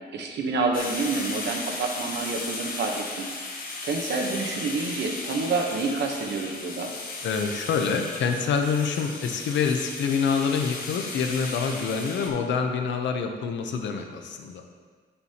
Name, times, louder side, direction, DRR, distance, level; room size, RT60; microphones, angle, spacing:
voice 1, 0.1-3.3 3.8-6.9, right 3 dB, 70° right, 2 dB, 1.0 m, -28 dB
sound 1, 0.7-12.3, left 3 dB, 50° left, 0.9 m, -36 dB
voice 2, 7.2-14.6, left 6 dB, 80° left, 5 dB, 0.8 m, -26 dB
9.1 x 6.8 x 2.8 m, 1.5 s
wide cardioid pair, 170°, 19 cm